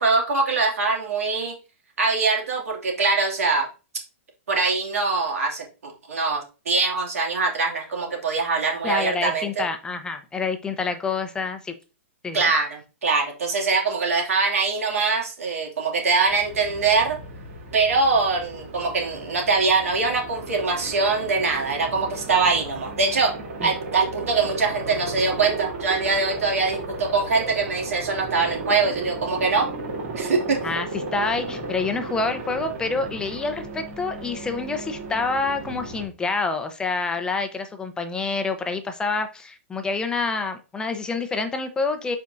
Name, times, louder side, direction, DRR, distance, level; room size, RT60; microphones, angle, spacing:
voice 1, 0.0-1.5 2.0-3.7 4.5-9.6 12.3-12.7 13.0-17.2 17.7-23.3 23.6-29.7 30.2-30.6, right 4 dB, 90° right, 0 dB, 2.6 m, -23 dB
voice 2, 8.8-11.7 12.2-12.5 23.6-23.7 30.6-42.2, left 4 dB, 10° left, 7 dB, 0.7 m, -27 dB
Aircraft, 16.2-36.1, right 3 dB, 55° right, 2.9 m, -35 dB
8.1 x 4.5 x 2.6 m, 0.32 s
hypercardioid pair, 135°, 7 cm